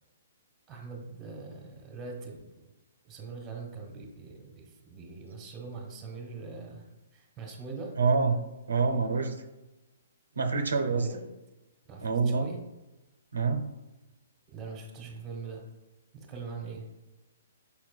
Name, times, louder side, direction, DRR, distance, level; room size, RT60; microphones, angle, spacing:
voice 1, 0.7-2.7 3.0-8.0 10.9-11.2 11.9-12.6 14.5-15.6 16.1-16.9, right 4 dB, 15° right, 0 dB, 1.2 m, -42 dB
voice 2, 8.0-9.3 10.4-11.1 12.0-12.5 13.3-13.7, right 4 dB, 90° right, 5 dB, 0.5 m, -26 dB
5.3 x 4.4 x 2.2 m, 1.0 s
hypercardioid pair, 145°, 0 cm